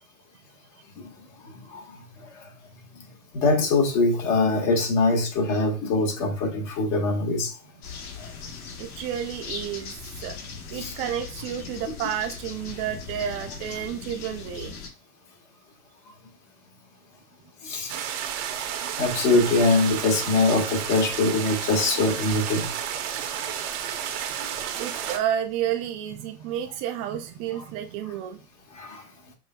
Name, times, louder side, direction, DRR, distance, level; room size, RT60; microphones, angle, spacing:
voice 1, 1.5-1.8 3.3-7.5 8.2-8.3 10.7-10.9 17.6-17.9 19.0-22.7 28.7-29.0, left 3 dB, 50° left, 1.6 m, -23 dB
sound 1, 7.8-14.9, left 5 dB, 70° left, 1.2 m, -39 dB
voice 2, 8.8-9.9 10.2-10.4 10.7-14.7 24.8-28.4, right 10 dB, 20° right, 0.3 m, -31 dB
sound 2, 17.9-25.2, right 9 dB, 50° right, 0.8 m, -31 dB
5.3 x 3.0 x 2.2 m
hypercardioid pair, 110°, 47 cm